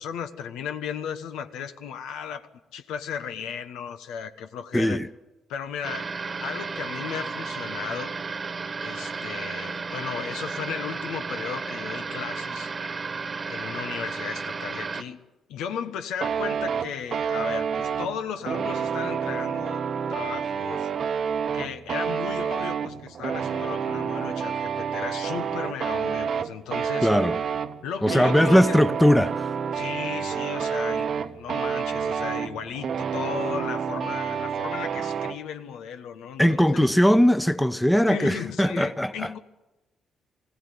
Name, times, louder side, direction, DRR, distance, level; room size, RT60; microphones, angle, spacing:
voice 1, 0.0-5.0 5.5-6.1 6.4-8.1 8.8-12.7 13.5-15.2 15.5-20.9 21.5-27.1 27.8-28.8 29.7-36.8 38.1-39.4, left 7 dB, 90° left, 1.3 m, -35 dB
voice 2, 4.7-5.1 27.0-27.4 28.0-29.5 36.4-39.3, equal, 5° left, 0.9 m, -20 dB
sound 1, 5.8-15.0, right 4 dB, 35° right, 1.3 m, -33 dB
sound 2, 16.2-35.4, right 7 dB, 60° right, 1.0 m, -29 dB
20.5 x 16.5 x 9.6 m
cardioid pair, 90°, 0 cm